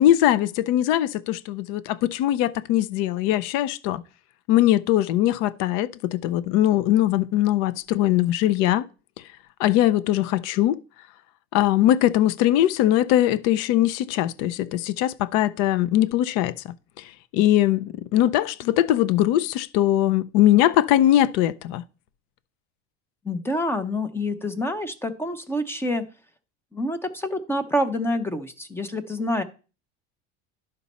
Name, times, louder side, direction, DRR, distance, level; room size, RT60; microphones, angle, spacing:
voice 1, 0.0-4.0 4.5-8.9 9.6-10.8 11.5-17.0 17.3-21.8, left 13 dB, 55° left, 0.5 m, -21 dB
voice 2, 23.2-26.0 26.7-29.4, left 1 dB, 10° left, 0.5 m, -27 dB
11.0 x 5.2 x 4.1 m
cardioid pair, 155°, 31 cm